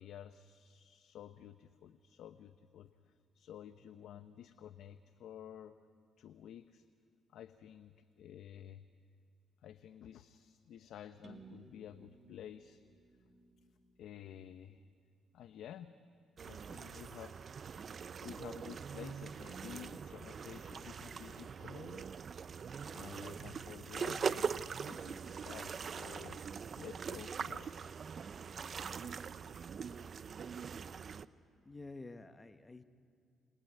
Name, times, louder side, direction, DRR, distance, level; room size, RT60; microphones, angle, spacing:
voice 1, 0.0-5.7 6.2-6.8 7.3-8.9 9.6-12.8 14.0-14.8 15.3-16.0 16.4-17.5 18.2-22.1 22.9-24.5 24.8-26.4 26.7-27.7 28.5-28.6 29.0-29.1, left 10 dB, 80° left, 11 dB, 0.8 m, -52 dB
sound 1, 11.2-15.1, right 4 dB, 30° right, 2.8 m, -60 dB
sound 2, 16.4-31.3, right 6 dB, 50° right, 0.7 m, -42 dB
voice 2, 31.6-32.8, left 3 dB, 20° left, 9 dB, 1.2 m, -49 dB
28.5 x 22.0 x 9.6 m, 2.4 s
cardioid pair, 90°, 0 cm